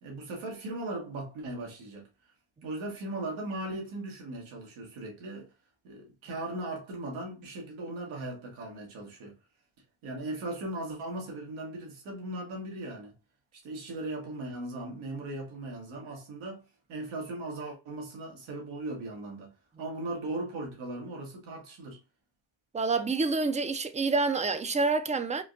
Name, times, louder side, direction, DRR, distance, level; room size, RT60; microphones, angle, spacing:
voice 1, 0.0-2.1 2.6-5.5 5.8-9.4 10.0-13.1 13.5-22.0, right 2 dB, 85° right, 1.4 m, -38 dB
voice 2, 22.7-25.4, right 3 dB, 15° right, 0.4 m, -27 dB
3.8 x 2.5 x 2.4 m
supercardioid pair, 65°, 47 cm